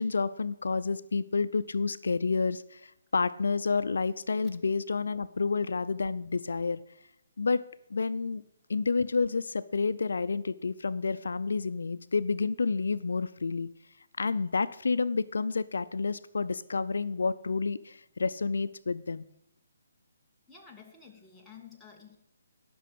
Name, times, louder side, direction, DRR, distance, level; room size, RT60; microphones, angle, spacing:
voice 1, 0.0-6.8 7.4-7.6 7.9-8.4 8.7-13.7 14.2-19.2, left 4 dB, 80° left, 14 dB, 0.5 m, -29 dB
voice 2, 20.5-22.2, left 6 dB, ahead, -4 dB, 1.6 m, -52 dB
12.0 x 6.1 x 7.6 m, 0.79 s
hypercardioid pair, 155°, 0 cm